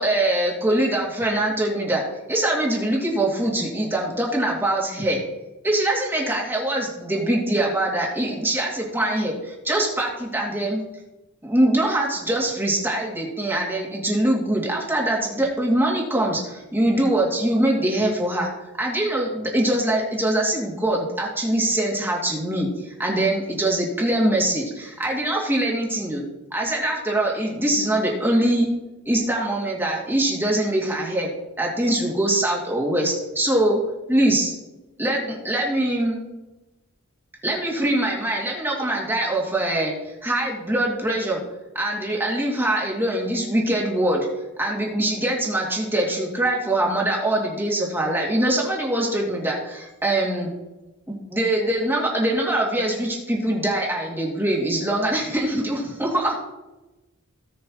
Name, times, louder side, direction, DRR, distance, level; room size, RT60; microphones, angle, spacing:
voice 1, 0.0-2.0 2.3-5.2 5.6-10.8 11.4-18.5 18.8-26.2 26.5-28.7 29.1-31.3 31.6-33.8 34.1-34.5 35.0-36.2 37.4-41.4 41.7-44.3 44.6-50.5 51.1-56.4, right 1 dB, 10° right, -3 dB, 2.6 m, -23 dB
18.5 x 6.3 x 3.1 m, 1.0 s
head